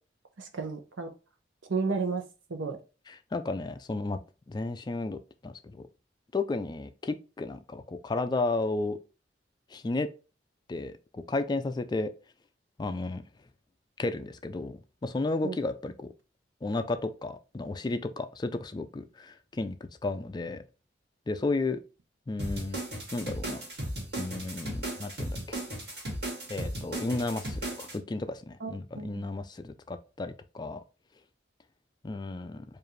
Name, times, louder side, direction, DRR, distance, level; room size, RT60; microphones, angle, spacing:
voice 1, 0.4-1.1 1.7-2.2 2.5-2.8 15.4-15.6 28.6-29.3, right 4 dB, 90° right, 0.8 m, -32 dB
voice 2, 3.1-4.2 4.5-5.8 6.3-9.0 9.7-10.1 10.7-12.1 12.8-13.2 14.0-16.1 16.6-19.8 20.0-20.6 21.3-21.8 22.3-22.8 23.1-23.6 24.2-25.6 26.5-30.8 32.0-32.6, left 2 dB, 20° left, 0.3 m, -33 dB
sound 1, 22.4-27.9, right 1 dB, 55° right, 2.2 m, -36 dB
4.7 x 2.5 x 3.1 m
head